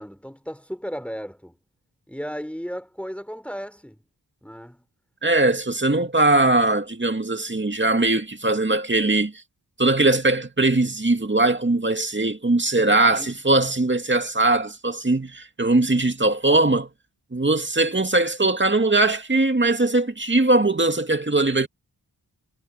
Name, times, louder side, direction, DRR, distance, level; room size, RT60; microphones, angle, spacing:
voice 1, 0.0-1.5 2.1-4.0 4.4-4.9 13.0-13.4, equal, 5° left, 3.7 m, -35 dB
voice 2, 5.2-9.3 9.8-16.9 17.3-21.7, right 2 dB, 25° right, 2.4 m, -20 dB
cardioid pair, 60°, 42 cm